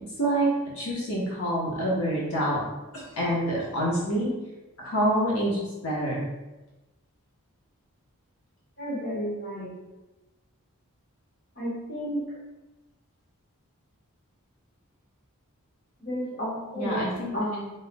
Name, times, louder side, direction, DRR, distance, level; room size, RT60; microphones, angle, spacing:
voice 1, 0.7-2.6 2.9-4.3 4.8-6.2 16.8-17.3, right 1 dB, 85° left, -5 dB, 1.0 m, -27 dB
voice 2, 8.8-9.7 11.5-12.2 16.0-17.1 17.3-17.7, equal, 45° left, -6 dB, 1.5 m, -32 dB
4.6 x 4.3 x 2.2 m, 1.1 s
head